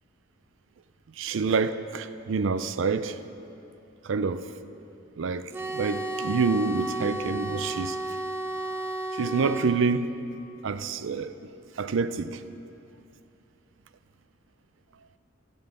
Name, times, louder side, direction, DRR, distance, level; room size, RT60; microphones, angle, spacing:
voice 1, 1.2-3.2 4.0-4.5 5.2-8.0 9.1-10.1 10.6-11.3 11.8-12.4, right 4 dB, 75° right, 0.4 m, -27 dB
sound 1, 5.5-9.7, right 2 dB, 10° right, 0.7 m, -32 dB
12.5 x 9.3 x 5.0 m
head